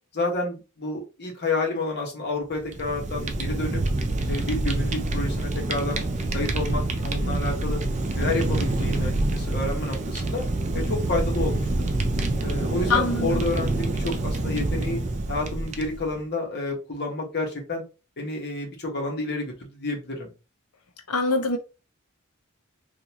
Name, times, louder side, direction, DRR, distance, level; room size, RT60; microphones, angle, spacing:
voice 1, 0.1-3.8 4.3-6.0 6.3-7.8 8.1-10.5 10.7-11.9 12.4-15.0 15.3-17.8 18.2-20.3, left 2 dB, 50° left, 1.3 m, -30 dB
Fire, 2.6-16.2, right 2 dB, 35° right, 0.5 m, -26 dB
voice 2, 12.9-13.4 21.1-21.6, left 3 dB, 85° left, 0.8 m, -23 dB
3.8 x 2.6 x 2.9 m
head